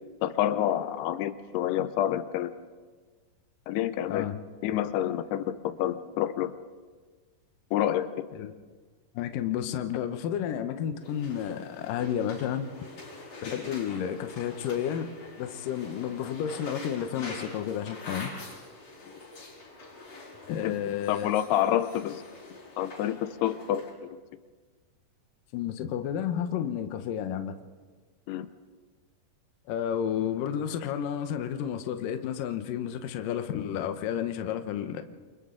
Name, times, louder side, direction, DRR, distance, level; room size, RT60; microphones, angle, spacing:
voice 1, 0.2-2.5 3.7-4.3 4.6-6.5 7.7-8.1 20.6-20.7 21.1-22.2 22.8-24.2 28.3-28.5, left 11 dB, 90° left, 2.9 m, -28 dB
voice 2, 4.1-4.4 8.3-8.5 9.1-12.7 13.4-15.1 15.4-18.3 20.5-21.3 25.5-27.6 29.7-35.0, left 9 dB, 70° left, 2.4 m, -31 dB
sound 1, 11.0-23.9, left 2 dB, 45° left, 6.2 m, -45 dB
28.5 x 25.5 x 3.8 m
omnidirectional pair, 4.5 m